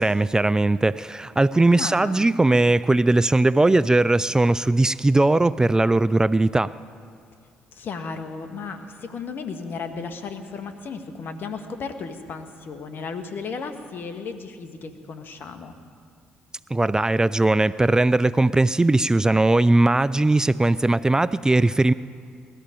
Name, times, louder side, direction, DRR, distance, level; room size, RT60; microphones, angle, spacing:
voice 1, 0.0-6.7 16.7-21.9, right 2 dB, 15° right, 16 dB, 0.4 m, -19 dB
voice 2, 1.7-2.4 7.7-15.7, left 5 dB, 55° left, 7 dB, 1.5 m, -34 dB
19.5 x 13.5 x 5.1 m, 2.2 s
hypercardioid pair, 50°, 4 cm